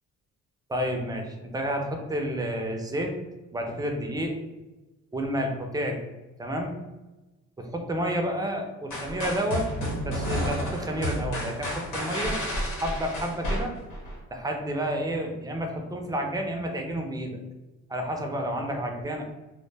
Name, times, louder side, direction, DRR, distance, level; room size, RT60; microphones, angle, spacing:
voice 1, 0.7-3.1 3.5-4.3 5.1-6.0 6.4-6.7 7.6-9.7 10.0-12.3 12.7-13.7 14.3-17.4 17.9-19.2, equal, 15° right, 3 dB, 0.4 m, -30 dB
sound 1, 8.9-14.2, equal, 85° left, 0.9 m, -31 dB
2.1 x 2.1 x 3.2 m, 1.1 s
cardioid pair, 90°, 30 cm